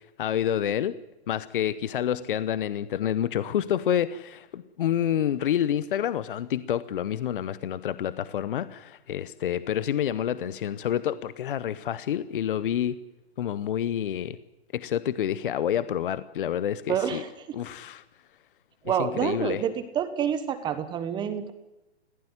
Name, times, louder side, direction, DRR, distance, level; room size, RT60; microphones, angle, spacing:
voice 1, 0.2-1.0 1.3-13.0 13.4-14.4 14.7-17.2 17.5-18.0 19.0-19.6, left 10 dB, 50° left, 15 dB, 1.0 m, -28 dB
voice 2, 16.9-17.6 18.8-21.5, right 8 dB, 15° right, 11 dB, 1.1 m, -28 dB
21.0 x 16.5 x 9.8 m, 1.0 s
hypercardioid pair, 150°, 33 cm